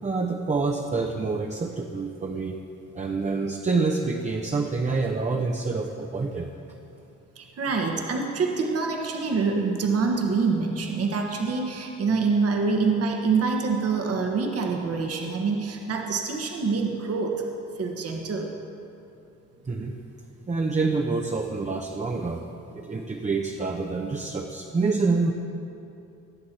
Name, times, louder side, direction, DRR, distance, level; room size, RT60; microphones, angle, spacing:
voice 1, 0.0-2.6 2.9-6.5 19.6-20.0 20.5-22.4 22.7-25.3, right 4 dB, 25° right, 2 dB, 0.8 m, -27 dB
voice 2, 7.4-17.4 17.8-18.5, right 4 dB, 50° right, 1 dB, 1.4 m, -26 dB
18.5 x 7.7 x 4.3 m, 2.7 s
cardioid pair, 90°, 30 cm